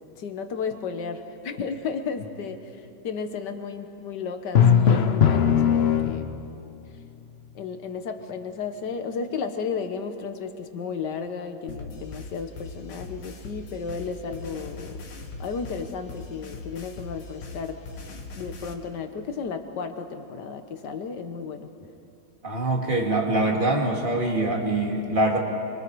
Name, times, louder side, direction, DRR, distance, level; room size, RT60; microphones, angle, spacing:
voice 1, 0.2-6.4 7.6-15.0 15.4-17.8 18.1-21.7, left 5 dB, 70° left, 7 dB, 1.8 m, -33 dB
Drum, 4.5-6.6, left 8 dB, 50° left, 0.7 m, -19 dB
sound 1, 11.7-18.7, left 3 dB, 90° left, 2.2 m, -40 dB
voice 2, 22.4-25.4, right 2 dB, 30° right, 0 dB, 2.3 m, -24 dB
26.0 x 24.0 x 4.7 m, 2.7 s
omnidirectional pair, 1.9 m